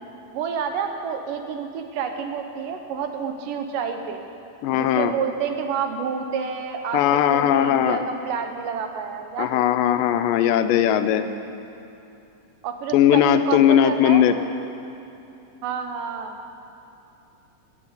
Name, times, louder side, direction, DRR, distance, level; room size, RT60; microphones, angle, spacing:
voice 1, 0.3-4.2 4.7-9.7 12.6-14.2 15.6-16.4, right 6 dB, 80° right, 6 dB, 2.6 m, -29 dB
voice 2, 4.6-5.1 6.9-8.0 9.4-11.3 12.9-14.3, left 10 dB, 90° left, 10 dB, 2.4 m, -19 dB
13.5 x 8.2 x 9.6 m, 2.8 s
omnidirectional pair, 3.8 m